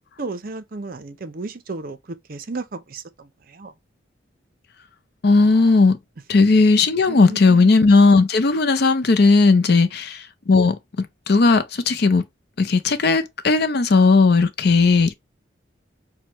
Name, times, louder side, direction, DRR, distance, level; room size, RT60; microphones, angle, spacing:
voice 1, 0.2-3.7 7.1-7.9 9.7-9.9, right 3 dB, 45° right, 0.6 m, -34 dB
voice 2, 5.2-6.0 6.3-12.2 12.6-15.1, left 3 dB, 55° left, 0.5 m, -16 dB
5.8 x 2.2 x 2.9 m
head